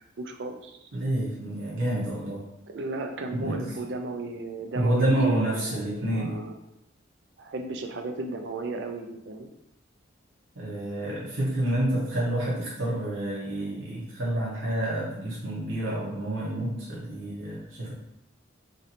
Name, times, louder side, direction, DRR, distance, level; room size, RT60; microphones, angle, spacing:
voice 1, 0.0-0.8 2.7-6.6 7.4-9.5, right 2 dB, 60° right, 4 dB, 0.4 m, -35 dB
voice 2, 0.9-2.4 3.3-3.7 4.7-6.4 10.5-17.9, right 1 dB, 85° right, -6 dB, 0.8 m, -28 dB
3.0 x 2.6 x 2.8 m, 0.82 s
head